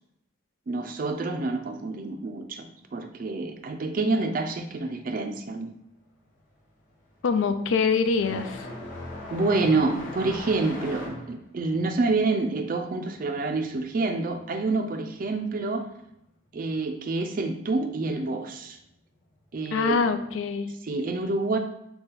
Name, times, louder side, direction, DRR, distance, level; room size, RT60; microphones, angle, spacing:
voice 1, 0.7-2.6 2.9-5.7 9.3-15.9 16.5-18.8 19.5-20.0 20.8-21.6, right 3 dB, 45° right, 6 dB, 0.4 m, -27 dB
sound 1, 5.6-5.9 6.2-14.5 14.8-15.8 16.8-16.9 17.7-17.8 19.6-19.7, left 2 dB, 40° left, 0.9 m, -40 dB
voice 2, 7.2-8.7 19.7-20.7, left 5 dB, 70° left, 9 dB, 0.4 m, -24 dB
4.0 x 2.3 x 3.8 m, 0.81 s
head